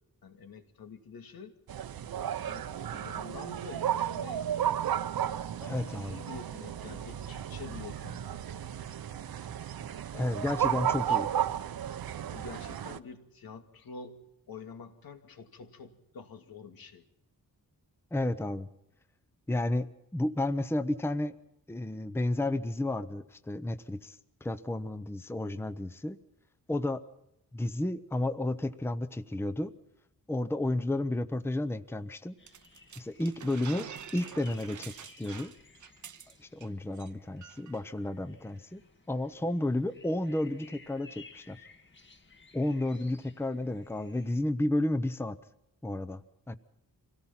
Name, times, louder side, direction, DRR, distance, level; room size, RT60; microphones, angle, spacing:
voice 1, 0.2-1.5 2.4-4.6 5.6-8.3 10.6-11.4 12.3-17.0, left 5 dB, 90° left, 6 dB, 2.4 m, -47 dB
sound 1, 1.7-13.0, right 10 dB, 85° right, 0.9 m, -33 dB
voice 2, 5.6-6.2 10.1-11.3 18.1-18.7 19.5-19.9 20.1-21.3 21.7-24.2 24.4-26.2 26.7-27.0 27.5-29.7 30.3-32.3 33.0-33.9 34.1-35.5 36.5-38.8 39.1-41.6 42.5-45.4 45.8-46.2 46.5-46.6, left 1 dB, 5° left, 12 dB, 0.7 m, -32 dB
sound 2, 32.4-44.4, left 4 dB, 35° left, 1.9 m, -57 dB
sound 3, 32.5-36.7 37.0-37.1 37.4-37.8, right 9 dB, 55° right, 0.7 m, -47 dB
26.0 x 18.0 x 5.8 m, 0.83 s
wide cardioid pair, 165°, 35 cm